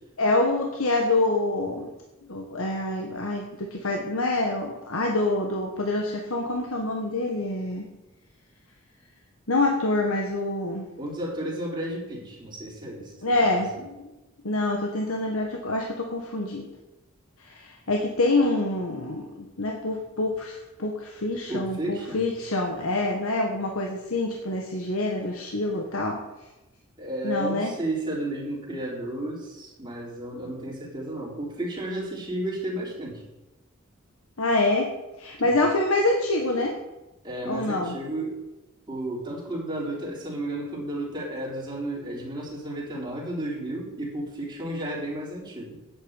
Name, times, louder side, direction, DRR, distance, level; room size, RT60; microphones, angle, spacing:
voice 1, 0.2-1.9 2.3-7.9 9.5-10.9 13.2-14.0 14.4-16.7 17.4-26.2 27.2-27.7 34.4-34.9 35.2-36.8 37.4-38.0, left 2 dB, 80° left, 1 dB, 1.5 m, -26 dB
voice 2, 11.0-13.1 13.5-13.6 21.5-22.2 27.0-33.2 35.4-35.6 37.2-38.4 38.9-45.8, right 1 dB, 20° right, -4 dB, 4.1 m, -32 dB
9.0 x 7.2 x 8.9 m, 1.0 s
head